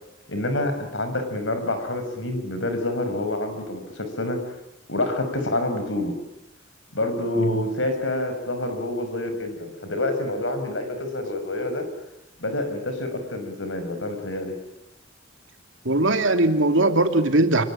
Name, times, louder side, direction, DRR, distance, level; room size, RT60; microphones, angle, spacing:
voice 1, 0.3-4.4 4.9-6.2 6.9-11.9 12.4-14.6, left 1 dB, 70° left, 8 dB, 6.0 m, -27 dB
voice 2, 15.8-17.6, right 2 dB, 75° right, 6 dB, 2.9 m, -20 dB
26.5 x 22.5 x 8.9 m, 0.88 s
head